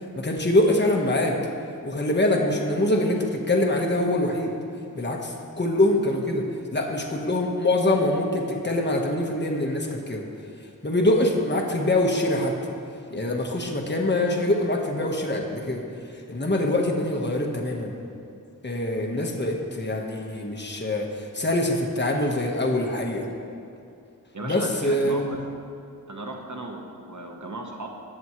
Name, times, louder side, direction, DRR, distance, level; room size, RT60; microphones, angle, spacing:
voice 1, 0.1-1.4 1.8-4.5 4.9-6.4 6.7-10.2 10.8-12.5 13.1-15.8 16.3-17.9 18.6-23.3 24.4-25.3, left 1 dB, 30° left, 0 dB, 1.3 m, -24 dB
voice 2, 24.3-25.4 26.1-27.9, right 2 dB, 60° right, 2 dB, 1.2 m, -36 dB
20.0 x 7.1 x 3.2 m, 2.6 s
wide cardioid pair, 50°, 34 cm